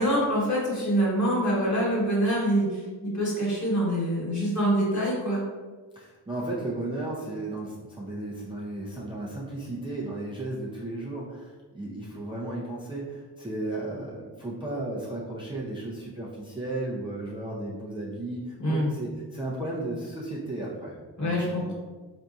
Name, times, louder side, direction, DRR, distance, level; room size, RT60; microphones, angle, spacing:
voice 1, 0.0-5.4 18.6-18.9 21.2-21.7, equal, 40° left, -4 dB, 1.3 m, -25 dB
voice 2, 5.9-21.7, right 2 dB, 10° right, -6 dB, 0.4 m, -34 dB
4.0 x 2.6 x 2.3 m, 1.4 s
wide cardioid pair, 105°, 45 cm